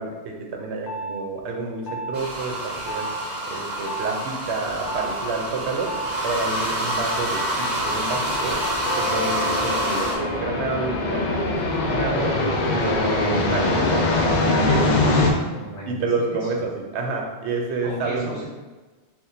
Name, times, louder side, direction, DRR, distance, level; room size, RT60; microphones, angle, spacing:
voice 1, 0.0-3.1 3.5-5.9 6.2-8.6 9.0-12.4 12.7-14.0 14.7-15.0 15.9-18.4, right 3 dB, 80° right, 1 dB, 0.9 m, -29 dB
sound 1, 0.9-1.2 1.9-2.2 2.9-3.2 3.9-4.2 4.9-5.2 5.9-6.2 6.9-11.9, left 1 dB, 80° left, 0.9 m, -33 dB
sound 2, 2.1-10.2, right 1 dB, 45° right, 0.7 m, -27 dB
sound 3, 4.7-15.3, left 2 dB, 55° left, 0.5 m, -24 dB
voice 2, 15.1-16.5 17.8-18.5, equal, 30° left, -7 dB, 0.9 m, -35 dB
4.3 x 2.2 x 2.6 m, 1.3 s
omnidirectional pair, 1.1 m